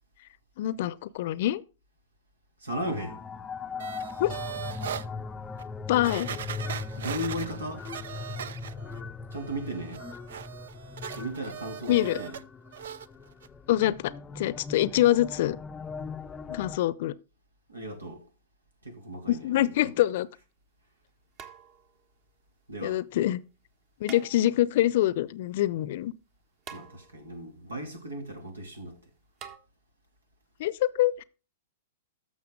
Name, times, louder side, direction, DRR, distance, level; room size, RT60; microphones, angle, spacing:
voice 1, 0.6-1.6 4.2-4.3 5.9-6.3 11.9-12.2 13.7-15.6 16.5-17.1 19.3-20.3 22.8-23.4 24.0-26.1 30.6-31.2, left 14 dB, 55° left, 0.7 m, -25 dB
voice 2, 2.6-3.2 7.0-7.9 9.3-10.0 11.1-12.4 17.7-18.2 18.8-19.9 22.7-23.0 26.7-29.1, right 1 dB, 85° right, 2.9 m, -36 dB
sound 1, 2.7-16.8, left 5 dB, 15° left, 0.6 m, -39 dB
sound 2, 3.8-5.1 5.6-5.7 6.0-9.0 9.3-12.4 12.7-13.1 13.4-13.5, right 8 dB, 65° right, 0.6 m, -39 dB
sound 3, 20.0-20.1 21.4-22.1 24.0-24.8 26.6-27.4 29.4-29.6, right 7 dB, 35° right, 1.3 m, -46 dB
13.0 x 6.7 x 3.8 m
figure-of-eight pair, 110°, 0 cm